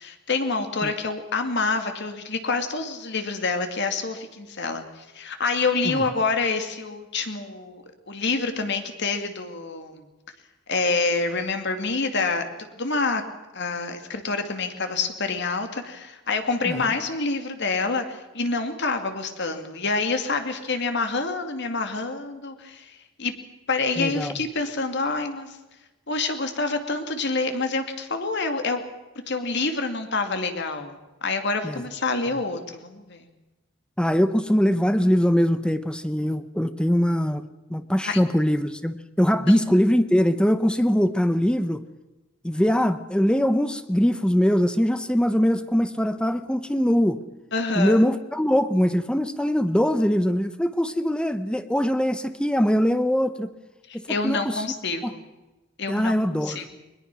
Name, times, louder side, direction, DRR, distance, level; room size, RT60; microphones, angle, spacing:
voice 1, 0.0-10.0 10.7-12.5 12.8-13.2 13.5-23.3 23.7-25.6 26.1-28.8 29.3-33.3 38.0-38.3 39.5-39.6 47.5-48.0 53.9-55.2 55.8-56.1 56.4-56.6, left 3 dB, 60° left, 7 dB, 2.5 m, -27 dB
voice 2, 24.0-24.4 31.6-31.8 34.0-37.4 37.7-41.8 42.4-47.2 47.8-53.5 53.9-54.6 55.0-55.1 55.9-56.6, equal, 5° left, 11 dB, 0.8 m, -22 dB
22.0 x 21.0 x 6.2 m, 1.1 s
head